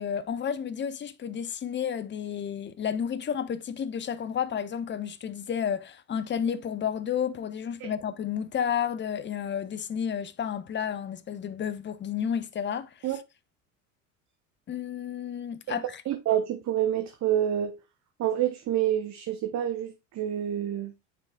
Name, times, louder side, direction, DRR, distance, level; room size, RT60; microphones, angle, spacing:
voice 1, 0.0-13.1 14.7-16.0, left 8 dB, 25° left, 0.6 m, -31 dB
voice 2, 16.1-17.8 18.2-20.9, right 11 dB, 40° right, 0.8 m, -28 dB
9.0 x 4.7 x 2.3 m
hypercardioid pair, 75°, 42 cm